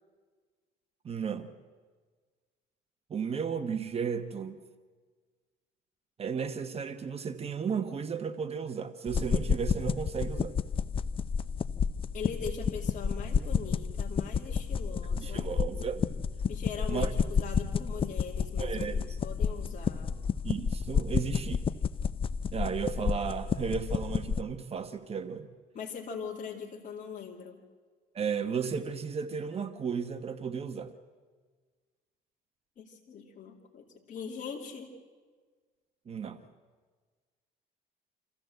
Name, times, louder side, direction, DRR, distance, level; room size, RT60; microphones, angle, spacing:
voice 1, 1.0-1.5 3.1-4.6 6.2-10.5 15.1-16.0 16.9-17.1 18.6-19.2 20.4-21.6 22.5-25.5 28.1-30.9 36.1-36.4, right 6 dB, 35° right, 9 dB, 1.1 m, -34 dB
sound 1, 9.1-24.4, left 6 dB, 30° left, 0.6 m, -31 dB
voice 2, 12.1-15.5 16.5-18.9 19.2-20.2 25.7-27.6 32.8-35.0, left 6 dB, 50° left, -1 dB, 2.5 m, -41 dB
27.0 x 14.5 x 7.9 m, 1.5 s
cardioid pair, 110°, 17 cm